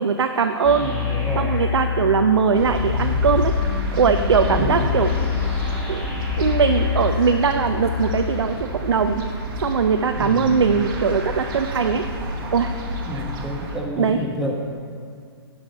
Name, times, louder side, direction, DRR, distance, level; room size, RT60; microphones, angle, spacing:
voice 1, 0.0-0.9 1.4-5.1 5.9-6.1 6.4-9.2 9.6-12.0 12.5-12.7 13.1-13.2 14.0-14.2, right 6 dB, 85° right, 7 dB, 0.5 m, -20 dB
sound 1, 0.6-8.2, left 7 dB, 15° left, 2.0 m, -26 dB
voice 2, 0.8-1.5 4.6-4.9 10.1-10.6 13.1-14.5, equal, 5° right, -2 dB, 1.3 m, -29 dB
sound 2, 2.5-13.8, left 1 dB, 50° right, 1.5 m, -29 dB
9.6 x 5.7 x 5.4 m, 2.1 s
hypercardioid pair, 125°, 14 cm